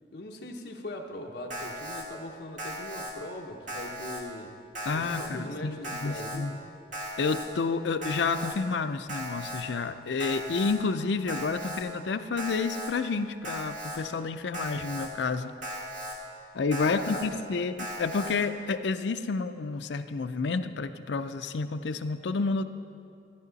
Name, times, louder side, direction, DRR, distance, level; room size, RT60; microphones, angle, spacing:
voice 1, 0.1-4.6 4.9-6.5 16.8-17.3, left 1 dB, 65° left, 1 dB, 1.0 m, -40 dB
Alarm, 1.5-2.0 2.6-3.1 3.7-4.2 4.7-5.3 5.8-6.4 6.9-7.5 8.0-8.5 9.1-9.6 10.2-10.7 11.3-11.8 12.4-12.9 13.4-14.0 14.5-15.1 15.6-16.1 16.7-17.2 17.8-18.3, right 1 dB, 45° right, 2.0 m, -37 dB
voice 2, 4.9-6.6 7.2-15.5 16.5-22.6, left 4 dB, 80° left, 10 dB, 0.5 m, -30 dB
13.5 x 10.5 x 4.0 m, 2.6 s
head